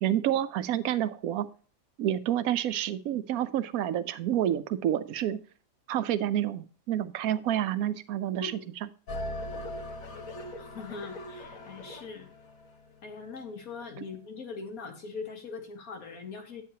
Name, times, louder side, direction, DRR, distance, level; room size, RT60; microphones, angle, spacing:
voice 1, 0.0-1.5 2.0-5.4 5.9-8.9, right 11 dB, 85° right, 14 dB, 1.1 m, -29 dB
sound 1, 9.1-13.4, left 1 dB, 70° left, 1.6 m, -40 dB
voice 2, 10.5-12.3 13.0-16.6, left 4 dB, 90° left, 4 dB, 1.9 m, -41 dB
9.2 x 8.7 x 2.8 m, 0.40 s
omnidirectional pair, 1.5 m